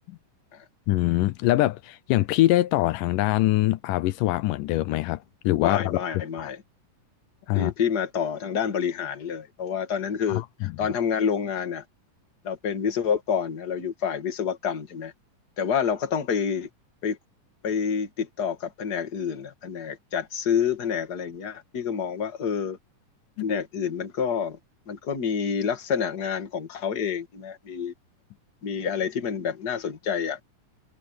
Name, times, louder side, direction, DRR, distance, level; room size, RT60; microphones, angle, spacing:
voice 1, 0.9-6.5 7.5-7.7, left 16 dB, 85° left, 2.3 m, -23 dB
voice 2, 5.6-6.6 7.5-11.8 12.4-15.1 15.6-16.7 17.0-17.2 17.6-22.8 23.4-24.6 24.9-27.9 28.6-30.4, left 7 dB, 35° left, 2.3 m, -28 dB
omnidirectional pair, 3.7 m